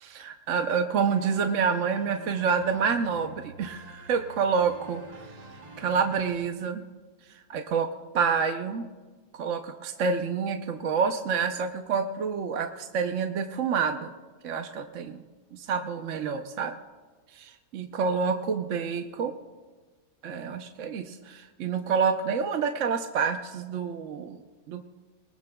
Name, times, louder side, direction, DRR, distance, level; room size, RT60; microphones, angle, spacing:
voice 1, 0.0-5.0 5.8-6.8 7.5-7.9 8.1-8.8 9.3-14.1 14.4-15.2 15.5-16.7 17.3-19.3 20.2-24.4 24.7-24.8, right 6 dB, 60° right, 5 dB, 1.0 m, -28 dB
sound 1, 1.1-6.3, right 2 dB, 30° right, 1.1 m, -47 dB
23.0 x 20.0 x 2.3 m, 1.3 s
omnidirectional pair, 1.5 m